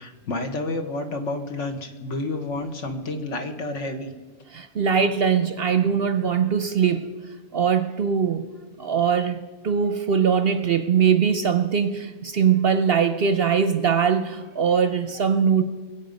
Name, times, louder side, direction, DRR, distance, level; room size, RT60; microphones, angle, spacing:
voice 1, 0.0-4.1, left 2 dB, 60° left, 5 dB, 1.6 m, -30 dB
voice 2, 4.5-7.1 7.5-8.4 8.8-15.6, right 7 dB, 55° right, 10 dB, 0.8 m, -21 dB
21.5 x 8.6 x 5.3 m, 1.3 s
omnidirectional pair, 1.4 m